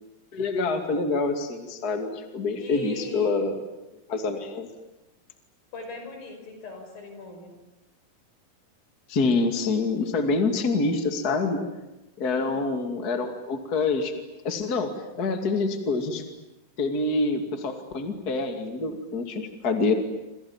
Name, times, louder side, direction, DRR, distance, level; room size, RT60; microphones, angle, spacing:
voice 1, 0.3-3.6 4.1-4.7 9.1-11.6 12.2-14.1 14.4-14.9 15.2-16.2 16.8-19.9, left 3 dB, 30° left, 5 dB, 2.6 m, -26 dB
voice 2, 2.6-3.5 5.7-7.5 12.2-12.7, left 3 dB, 75° left, 4 dB, 7.6 m, -40 dB
28.0 x 28.0 x 7.4 m, 0.96 s
omnidirectional pair, 4.1 m